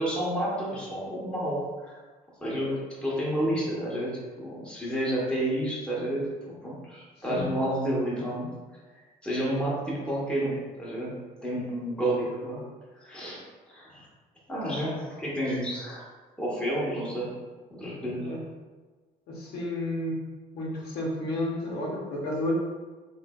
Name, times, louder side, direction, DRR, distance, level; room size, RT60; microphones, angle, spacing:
voice 1, 0.0-2.0 2.4-4.1 4.4-8.5 9.2-11.1 11.4-12.7 13.0-13.4 13.7-14.1 14.5-16.0 16.4-17.3 17.7-18.3, right 1 dB, 5° left, -6 dB, 0.9 m, -30 dB
voice 2, 19.3-20.2 20.5-22.5, left 1 dB, 75° left, -3 dB, 0.9 m, -31 dB
3.2 x 3.1 x 2.2 m, 1.3 s
cardioid pair, 110°, 17 cm